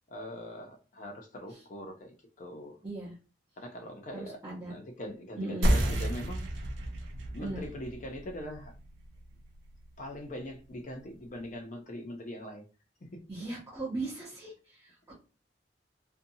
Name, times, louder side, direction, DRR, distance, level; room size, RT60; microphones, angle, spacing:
voice 1, 0.1-2.8 3.6-4.4 4.6-6.5 7.3-8.7 10.0-12.6 13.0-13.2, left 1 dB, 45° left, 5 dB, 0.5 m, -42 dB
voice 2, 2.8-3.2 4.1-4.8 5.4-5.7 7.4-7.6 13.3-15.1, right 2 dB, 15° right, -7 dB, 0.7 m, -38 dB
sound 1, 5.6-10.7, right 1 dB, 80° right, 0.6 m, -32 dB
2.6 x 2.2 x 2.6 m, 0.34 s
head